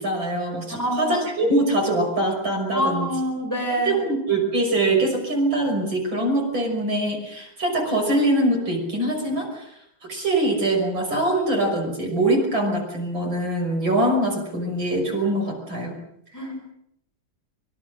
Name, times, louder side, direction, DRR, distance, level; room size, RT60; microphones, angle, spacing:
voice 1, 0.0-3.1 3.7-9.7 10.1-16.0, right 1 dB, 65° right, 2 dB, 6.7 m, -23 dB
voice 2, 0.7-1.2 2.7-4.1 16.3-16.7, equal, 10° left, 0 dB, 6.8 m, -26 dB
25.0 x 24.0 x 6.5 m, 0.73 s
omnidirectional pair, 2.3 m